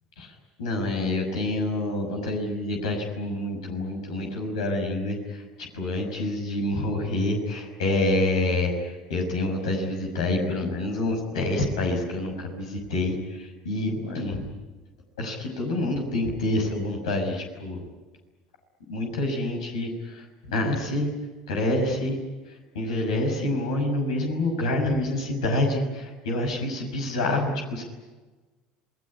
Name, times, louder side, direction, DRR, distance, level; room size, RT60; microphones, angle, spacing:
voice 1, 0.6-5.1 5.7-8.7 9.1-13.2 13.6-14.4 15.2-17.8 18.9-19.9 20.5-21.1 21.5-22.2 22.7-27.8, left 2 dB, 85° left, 2 dB, 6.1 m, -27 dB
28.0 x 19.5 x 9.9 m, 1.3 s
hypercardioid pair, 80°, 3 cm